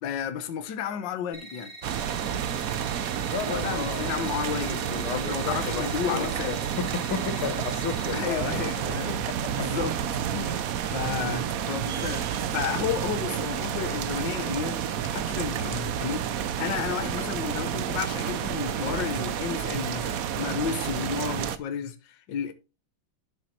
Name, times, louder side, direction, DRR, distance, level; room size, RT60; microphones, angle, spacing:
voice 1, 0.0-1.7 3.5-6.6 8.1-9.2 9.6-9.9 10.3-10.6 10.9-14.8 15.1-22.5, left 8 dB, 65° left, 1.6 m, -32 dB
sound 1, 1.3-8.2, right 1 dB, 25° right, 2.4 m, -44 dB
sound 2, 1.8-21.6, right 9 dB, 65° right, 0.8 m, -30 dB
voice 2, 3.3-4.3 5.0-9.7 10.3-10.7, left 6 dB, 80° left, 2.2 m, -34 dB
10.5 x 7.6 x 2.8 m
omnidirectional pair, 2.3 m